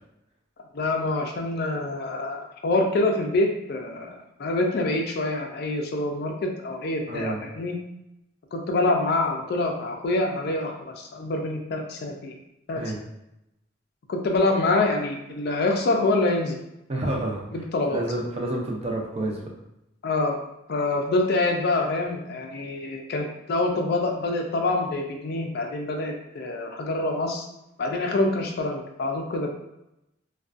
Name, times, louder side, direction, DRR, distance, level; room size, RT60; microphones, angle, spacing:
voice 1, 0.7-7.8 8.5-12.3 12.7-12.8 14.1-16.6 17.5-18.0 20.0-20.4 20.7-27.5 27.8-29.5, left 2 dB, 55° left, 2 dB, 0.4 m, -26 dB
voice 2, 7.1-7.4 12.7-13.0 16.9-17.5 17.9-19.5, right 1 dB, 30° right, -1 dB, 0.4 m, -29 dB
2.4 x 2.2 x 2.4 m, 0.85 s
head